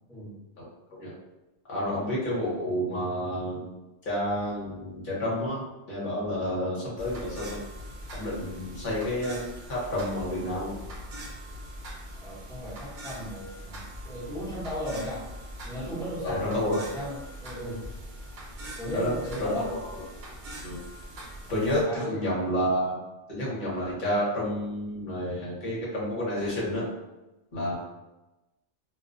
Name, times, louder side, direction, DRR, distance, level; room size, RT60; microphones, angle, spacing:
voice 1, 0.1-0.4 12.2-15.2 15.6-17.8 18.8-19.7 21.7-22.2, equal, 5° left, -10 dB, 0.7 m, -36 dB
voice 2, 1.7-3.7 4.0-7.6 8.1-10.8 16.2-16.8 18.9-20.0 20.6-20.8 21.5-23.0 23.3-26.9 27.5-27.7, left 1 dB, 45° left, -6 dB, 1.0 m, -30 dB
sound 1, 7.0-21.8, equal, 60° right, 0.5 m, -42 dB
2.4 x 2.2 x 2.5 m, 1.0 s
omnidirectional pair, 1.3 m